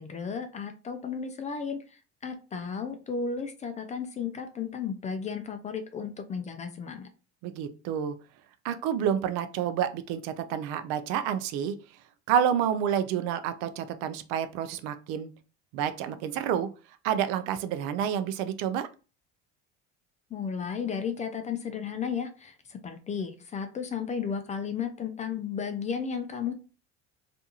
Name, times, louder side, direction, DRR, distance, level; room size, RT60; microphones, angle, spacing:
voice 1, 0.0-7.1 20.3-26.5, left 6 dB, 25° left, 7 dB, 0.3 m, -34 dB
voice 2, 7.4-8.1 8.6-11.8 12.3-15.3 15.7-16.7 17.0-18.9, right 9 dB, 75° right, 11 dB, 0.5 m, -29 dB
2.5 x 2.3 x 2.8 m, 0.33 s
supercardioid pair, 105°, 32 cm